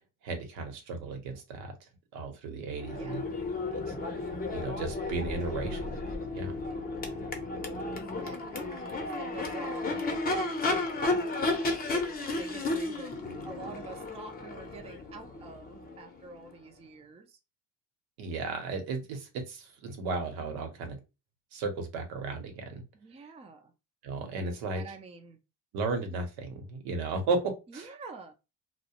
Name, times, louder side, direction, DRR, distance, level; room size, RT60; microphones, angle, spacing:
voice 1, 0.2-1.7 2.1-3.2 3.9-4.0 4.5-5.9 6.3-6.6 18.2-21.0 21.5-22.8 24.0-24.8 25.7-27.9, right 3 dB, 80° right, 0.9 m, -34 dB
Crowd / Race car auto racing / Accelerating revving vroom, 2.7-16.6, left 2 dB, 25° left, 0.6 m, -33 dB
voice 2, 2.9-3.3 8.2-10.1 10.3-13.1 13.4-17.4 23.0-23.7 24.7-25.4 27.7-28.3, right 3 dB, 15° right, 0.4 m, -47 dB
2.3 x 2.1 x 2.8 m
cardioid pair, 100°, 38 cm